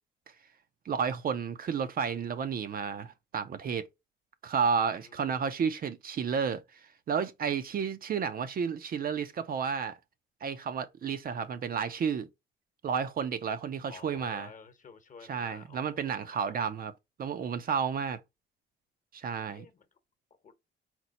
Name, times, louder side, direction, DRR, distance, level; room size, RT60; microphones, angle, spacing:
voice 1, 0.9-3.8 4.4-6.6 7.1-10.0 10.4-12.3 12.8-14.5 15.3-16.9 17.2-18.2 19.1-19.7, right 6 dB, 50° right, 0.5 m, -31 dB
voice 2, 13.9-16.6 19.5-19.9 20.4-20.5, left 5 dB, 40° left, 1.0 m, -52 dB
4.3 x 2.0 x 4.0 m
cardioid pair, 90°, 20 cm